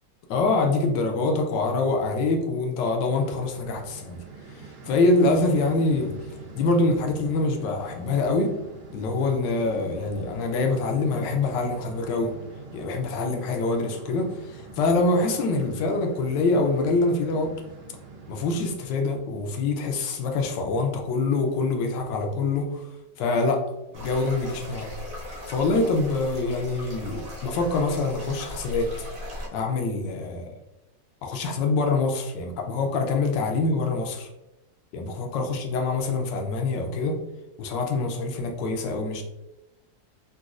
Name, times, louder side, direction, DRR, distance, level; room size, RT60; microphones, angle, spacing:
voice 1, 0.3-4.2 4.9-6.1 6.5-8.5 8.9-12.3 12.7-17.5 18.3-22.8 23.2-23.6 23.9-24.9 25.5-28.9 29.5-30.5 31.2-34.3 34.9-37.2 37.6-39.2, left 3 dB, 75° left, 3 dB, 1.2 m, -25 dB
sound 1, 3.1-18.8, right 4 dB, 80° right, 1.4 m, -44 dB
sound 2, 23.9-29.5, left 1 dB, 45° right, 0.9 m, -38 dB
4.0 x 2.2 x 2.4 m, 0.95 s
omnidirectional pair, 2.0 m